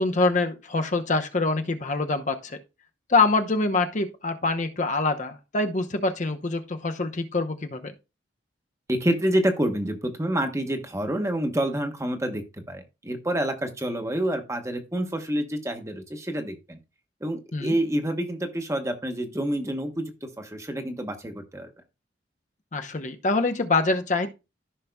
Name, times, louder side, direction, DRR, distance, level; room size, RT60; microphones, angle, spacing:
voice 1, 0.0-2.6 3.1-7.9 17.5-17.7 22.7-24.3, left 3 dB, 40° left, 0.8 m, -25 dB
voice 2, 8.9-16.8 17.2-21.7, right 1 dB, 15° right, 1.1 m, -28 dB
14.5 x 5.7 x 2.2 m
head